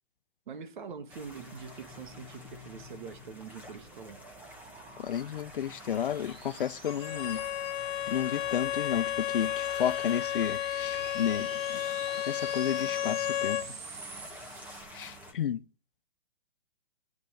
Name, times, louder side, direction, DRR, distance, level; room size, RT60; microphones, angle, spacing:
voice 1, 0.5-4.2 13.6-13.7, right 6 dB, 45° right, 2.0 m, -44 dB
sound 1, 1.1-15.3, left 1 dB, 5° right, 1.4 m, -49 dB
sound 2, 3.3-14.8, right 5 dB, 60° right, 3.4 m, -47 dB
voice 2, 5.0-7.4 8.1-12.0 12.3-13.6 14.9-15.6, left 9 dB, 50° left, 0.6 m, -32 dB
Bowed string instrument, 6.9-13.7, left 12 dB, 20° left, 1.3 m, -33 dB
9.4 x 9.3 x 9.3 m
hypercardioid pair, 165°, 33 cm